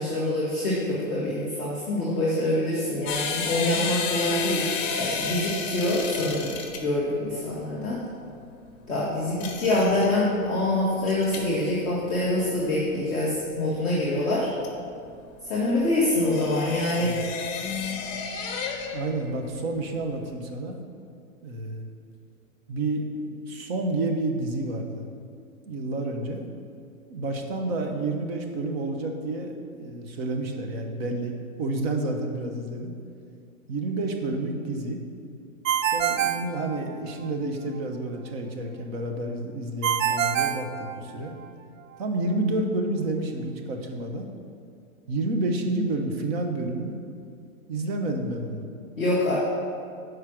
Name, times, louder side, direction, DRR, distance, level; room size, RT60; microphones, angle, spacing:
voice 1, 0.0-4.6 5.0-6.5 6.8-8.0 8.9-14.5 15.5-17.1 49.0-49.3, left 1 dB, ahead, -15 dB, 0.3 m, -25 dB
sound 1, 3.1-19.2 19.4-20.3, left 5 dB, 25° left, 0.7 m, -32 dB
voice 2, 18.9-20.8 21.4-21.8 22.7-25.1 25.6-26.5 27.1-32.9 33.7-35.0 35.9-41.3 42.0-44.3 45.1-47.0 47.7-48.7, right 2 dB, 45° right, 4 dB, 1.0 m, -30 dB
Ringtone, 35.6-37.3 39.8-41.5, right 9 dB, 65° right, 0.5 m, -26 dB
6.3 x 4.8 x 6.1 m, 2.4 s
hypercardioid pair, 150°, 42 cm